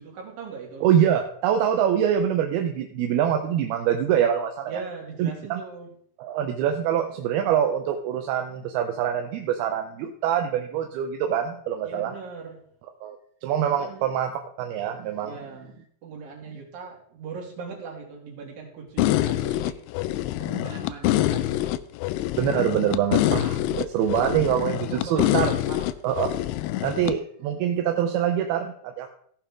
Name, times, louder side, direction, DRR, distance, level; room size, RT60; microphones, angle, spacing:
voice 1, 0.0-0.8 4.7-5.9 11.8-12.6 13.7-14.1 15.2-15.7 16.0-19.8 20.4-21.8 24.9-25.9, right 5 dB, 60° right, -1 dB, 4.1 m, -39 dB
voice 2, 0.8-4.8 5.2-5.6 6.2-12.1 13.0-13.2 13.4-14.3 14.6-15.3 22.4-25.5 26.0-26.3 26.8-29.1, right 9 dB, 75° right, 4 dB, 2.6 m, -24 dB
sound 1, 19.0-27.1, left 15 dB, 85° left, 2.7 m, -25 dB
16.0 x 6.8 x 3.6 m, 0.63 s
omnidirectional pair, 4.8 m